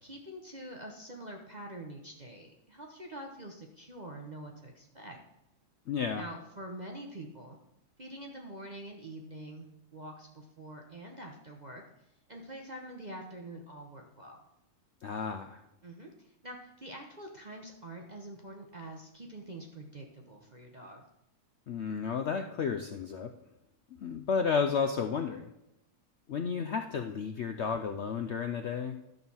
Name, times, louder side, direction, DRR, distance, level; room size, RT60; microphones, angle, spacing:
voice 1, 0.0-5.2 6.2-7.6 8.0-11.8 12.3-14.4 15.8-21.1, right 1 dB, 35° right, 1 dB, 0.9 m, -45 dB
voice 2, 5.9-6.2 15.0-15.6 21.7-23.3 24.0-25.5 26.3-29.0, left 6 dB, 65° left, 6 dB, 0.7 m, -32 dB
12.0 x 4.0 x 7.0 m, 0.87 s
omnidirectional pair, 1.7 m